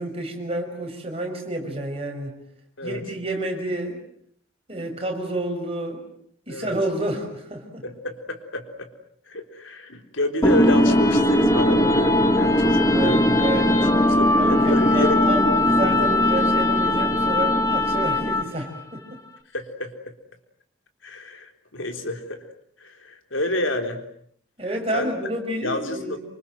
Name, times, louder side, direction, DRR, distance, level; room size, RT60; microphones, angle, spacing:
voice 1, 0.0-2.4 2.8-4.0 4.7-6.0 6.5-7.8 12.9-13.8 14.4-19.2 24.6-26.2, right 1 dB, 30° right, 2 dB, 6.1 m, -29 dB
voice 2, 7.8-8.9 9.3-13.4 13.7-15.2 19.5-20.1 21.0-22.4 22.8-24.0 24.9-25.1 25.6-26.2, left 1 dB, 80° left, 5 dB, 3.9 m, -29 dB
sound 1, 10.4-18.6, left 1 dB, 15° left, 2.2 m, -19 dB
27.5 x 25.5 x 7.7 m, 0.65 s
head